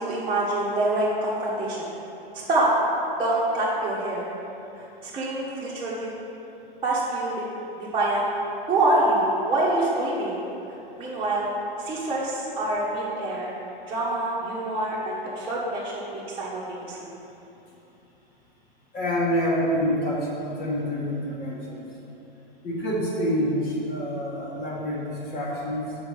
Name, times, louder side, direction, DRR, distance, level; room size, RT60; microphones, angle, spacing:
voice 1, 0.0-1.9 2.5-2.7 3.2-4.3 5.0-6.1 6.8-7.4 7.8-8.2 8.7-10.4 11.0-11.5 11.8-13.5 13.9-17.1, right 2 dB, 15° right, -9 dB, 1.3 m, -26 dB
voice 2, 18.9-21.9 22.6-25.8, equal, 35° left, -5 dB, 1.6 m, -27 dB
7.0 x 5.2 x 5.5 m, 3.0 s
hypercardioid pair, 125°, 29 cm